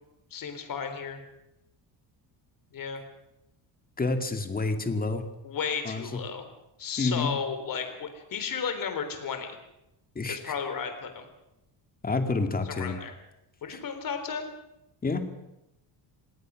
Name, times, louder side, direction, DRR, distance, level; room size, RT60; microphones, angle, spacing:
voice 1, 0.3-1.2 2.7-3.0 5.4-6.5 6.8-9.6 10.3-11.3 12.7-13.1 13.6-14.5, left 6 dB, 45° left, 8 dB, 3.9 m, -33 dB
voice 2, 4.0-5.2 5.8-6.0 7.0-7.4 10.2-10.5 12.0-13.0 13.7-13.8 15.0-15.2, left 3 dB, 20° left, 7 dB, 2.3 m, -28 dB
27.0 x 19.0 x 6.4 m, 0.90 s
cardioid pair, 155°, 47 cm